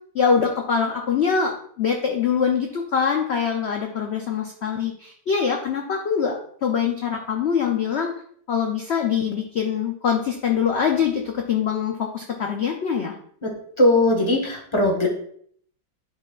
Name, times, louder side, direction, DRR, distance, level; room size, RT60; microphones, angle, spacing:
voice 1, 0.1-8.1 8.5-13.1, left 6 dB, 85° left, 2 dB, 0.5 m, -23 dB
voice 2, 13.8-15.1, left 1 dB, 20° left, 0 dB, 1.1 m, -19 dB
10.5 x 4.1 x 2.4 m, 0.62 s
omnidirectional pair, 2.0 m